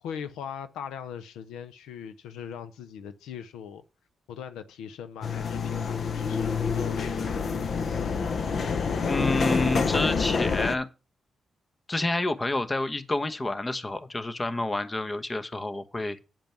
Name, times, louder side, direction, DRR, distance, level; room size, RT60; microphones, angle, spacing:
voice 1, 0.0-3.8 4.3-7.4, left 8 dB, 90° left, 0.5 m, -40 dB
sound 1, 5.2-10.8, left 5 dB, 60° left, 0.8 m, -27 dB
voice 2, 9.1-10.9 11.9-16.2, left 2 dB, 30° left, 1.0 m, -29 dB
9.0 x 5.2 x 5.9 m
supercardioid pair, 55°, 0 cm